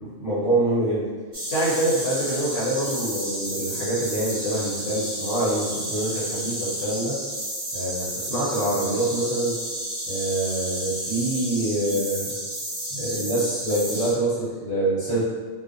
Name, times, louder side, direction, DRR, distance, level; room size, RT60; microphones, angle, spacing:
voice 1, 0.1-1.1 1.5-7.2 7.7-9.6 10.1-12.3 12.9-15.3, right 1 dB, 60° left, -9 dB, 0.9 m, -25 dB
sound 1, 1.3-14.1, right 1 dB, 40° right, 1.0 m, -31 dB
2.7 x 2.0 x 2.5 m, 1.5 s
omnidirectional pair, 1.3 m